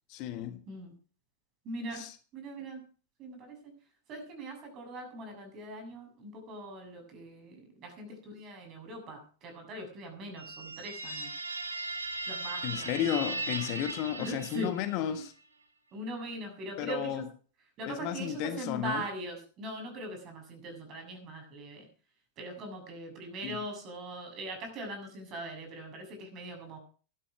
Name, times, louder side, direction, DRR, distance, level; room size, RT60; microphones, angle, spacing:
voice 1, 0.1-0.6 1.9-2.2 12.6-15.3 16.8-17.3 17.8-19.0 23.4-23.6, left 11 dB, 45° left, 1.4 m, -33 dB
voice 2, 1.7-2.0 2.3-2.8 3.2-3.7 4.1-11.3 12.3-12.9 14.2-14.7 15.1-15.2 15.9-17.2 17.8-21.9 22.4-26.8, right 1 dB, 35° right, 7.3 m, -41 dB
sound 1, 10.3-15.1, right 2 dB, 80° right, 2.3 m, -38 dB
13.5 x 11.5 x 6.2 m
figure-of-eight pair, 90°, 0 cm